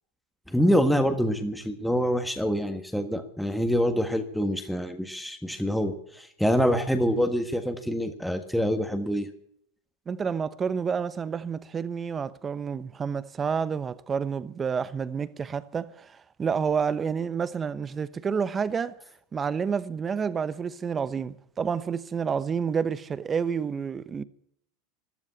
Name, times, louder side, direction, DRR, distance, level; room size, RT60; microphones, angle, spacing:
voice 1, 0.5-9.3, equal, ahead, 1.4 m, -26 dB
voice 2, 10.1-19.0 19.3-24.2, right 6 dB, 20° right, 0.9 m, -29 dB
13.5 x 12.0 x 8.2 m
supercardioid pair, 125°, 0 cm